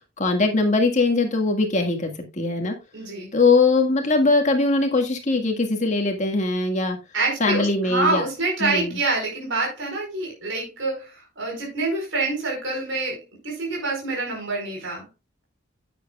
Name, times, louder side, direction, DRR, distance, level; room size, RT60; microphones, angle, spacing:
voice 1, 0.2-2.7 3.3-7.0 7.4-8.2 8.6-9.0, left 3 dB, 35° left, 1.8 m, -21 dB
voice 2, 2.9-3.3 7.1-15.1, right 3 dB, 65° right, 4.7 m, -26 dB
11.0 x 9.2 x 2.3 m
head